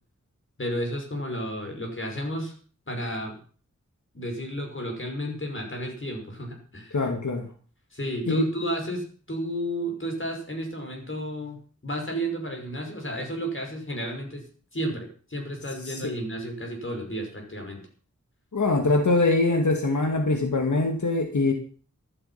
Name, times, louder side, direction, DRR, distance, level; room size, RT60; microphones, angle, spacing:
voice 1, 0.6-2.5 2.9-3.4 4.1-7.0 7.9-11.6 11.8-14.4 14.7-17.9, equal, 45° left, 2 dB, 5.9 m, -32 dB
voice 2, 6.9-7.5 8.3-8.4 15.9-16.1 18.5-21.5, left 2 dB, 80° left, 4 dB, 2.2 m, -23 dB
15.5 x 11.5 x 5.8 m, 0.41 s
wide cardioid pair, 75°, 30 cm